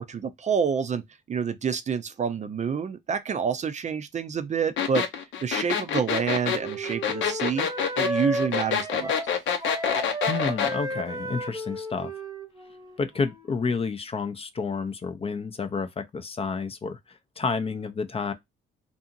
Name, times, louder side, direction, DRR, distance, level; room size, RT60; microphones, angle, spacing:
voice 1, 0.0-5.0 5.4-7.7 8.0-9.4, right 6 dB, 35° right, 0.4 m, -28 dB
sound 1, 4.8-10.8, left 7 dB, 75° left, 0.7 m, -26 dB
Wind instrument woodwind instrument, 5.6-13.6, right 1 dB, 15° right, 0.8 m, -34 dB
voice 2, 10.2-12.1 13.0-18.3, left 5 dB, 30° left, 0.5 m, -30 dB
2.7 x 2.6 x 2.4 m
cardioid pair, 90°, 20 cm